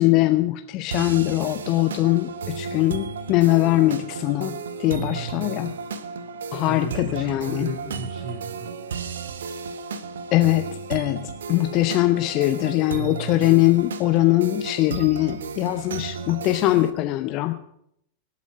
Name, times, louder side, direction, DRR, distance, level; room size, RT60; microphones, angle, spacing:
voice 1, 0.0-5.7 6.5-7.7 10.3-10.6 10.9-17.5, left 17 dB, 40° left, 9 dB, 0.7 m, -21 dB
sound 1, 0.9-16.9, right 5 dB, 65° right, 1.0 m, -34 dB
voice 2, 6.6-8.7, right 1 dB, 45° right, 1 dB, 2.7 m, -35 dB
24.5 x 8.4 x 5.2 m, 0.75 s
figure-of-eight pair, 90°, 0 cm